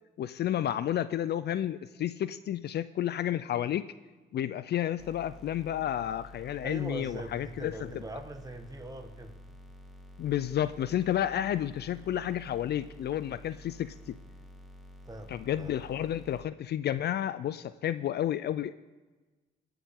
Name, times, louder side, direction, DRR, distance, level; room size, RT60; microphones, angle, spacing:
voice 1, 0.2-3.9 4.3-7.7 10.2-14.1 15.3-18.7, left 11 dB, 55° left, 14 dB, 0.4 m, -31 dB
sound 1, 5.0-16.4, equal, ahead, 1.6 m, -50 dB
voice 2, 6.6-9.4 15.0-15.7, right 2 dB, 20° right, 5 dB, 1.5 m, -42 dB
20.5 x 7.1 x 3.7 m, 1.2 s
cardioid pair, 90°, 20 cm